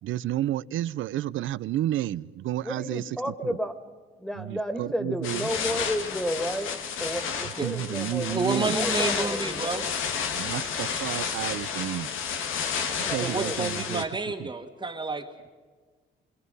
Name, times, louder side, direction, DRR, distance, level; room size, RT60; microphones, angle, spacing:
voice 1, 0.0-3.2 3.4-3.6 4.3-5.5 7.6-8.8 10.3-12.1 13.1-14.0 14.4-14.5, right 13 dB, 75° right, 19 dB, 0.6 m, -31 dB
voice 2, 2.6-3.8 4.2-9.9 12.9-13.7, equal, 5° left, 9 dB, 2.3 m, -32 dB
sound 1, 5.2-14.0, left 6 dB, 90° left, 1.9 m, -31 dB
voice 3, 8.3-9.8 13.2-15.5, right 3 dB, 25° right, 3 dB, 1.7 m, -30 dB
27.5 x 24.0 x 5.5 m, 1.4 s
cardioid pair, 90°, 20 cm